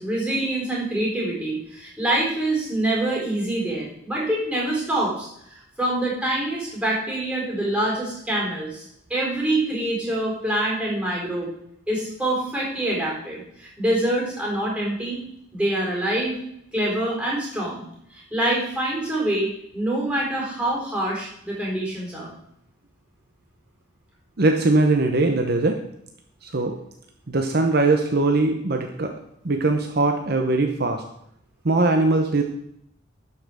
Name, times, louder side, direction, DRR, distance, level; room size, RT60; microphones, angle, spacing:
voice 1, 0.0-8.8 9.1-11.5 11.9-15.2 15.5-16.4 16.7-17.8 18.1-22.3, right 1 dB, 5° right, -4 dB, 4.1 m, -25 dB
voice 2, 24.4-25.8 26.4-26.8 27.3-29.1 29.4-31.0 31.6-32.4, right 2 dB, 50° right, 5 dB, 0.8 m, -21 dB
12.0 x 5.8 x 6.3 m, 0.74 s
head